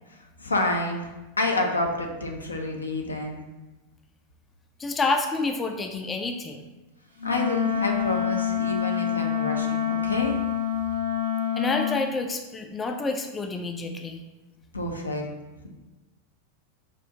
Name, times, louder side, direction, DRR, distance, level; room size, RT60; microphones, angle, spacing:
voice 1, 0.1-1.1 1.4-3.4 7.2-10.4 14.7-15.3, left 2 dB, 80° left, 2 dB, 0.5 m, -28 dB
voice 2, 4.8-6.6 11.6-14.2, left 3 dB, 15° left, 4 dB, 0.3 m, -28 dB
Wind instrument woodwind instrument, 7.2-12.0, left 9 dB, 85° right, 0.5 m, -27 dB
5.0 x 2.4 x 2.7 m, 1.1 s
figure-of-eight pair, 90°, 0 cm